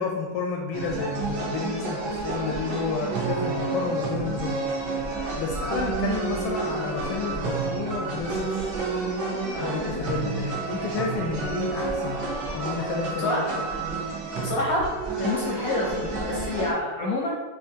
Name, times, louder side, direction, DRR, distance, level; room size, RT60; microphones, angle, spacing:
voice 1, 0.0-4.6 5.4-8.7 9.6-12.2 12.5-13.4, left 5 dB, 80° left, 1 dB, 1.4 m, -31 dB
sound 1, 0.7-16.7, right 3 dB, 60° right, 1.3 m, -30 dB
sound 2, 6.8-13.3, right 1 dB, 80° right, 0.7 m, -42 dB
voice 2, 9.5-9.8 13.2-13.6 14.4-14.9 15.2-17.3, left 2 dB, 65° left, -3 dB, 0.9 m, -28 dB
7.1 x 2.5 x 2.8 m, 1.2 s
omnidirectional pair, 2.3 m